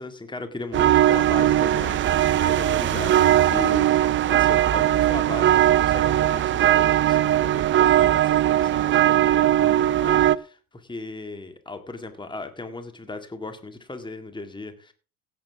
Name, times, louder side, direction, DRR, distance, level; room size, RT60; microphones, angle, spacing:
voice 1, 0.0-14.9, left 2 dB, 10° left, 8 dB, 2.0 m, -37 dB
sound 1, 0.7-10.4, right 12 dB, 25° right, 0.5 m, -19 dB
16.5 x 8.0 x 3.4 m, 0.34 s
hypercardioid pair, 75°, 46 cm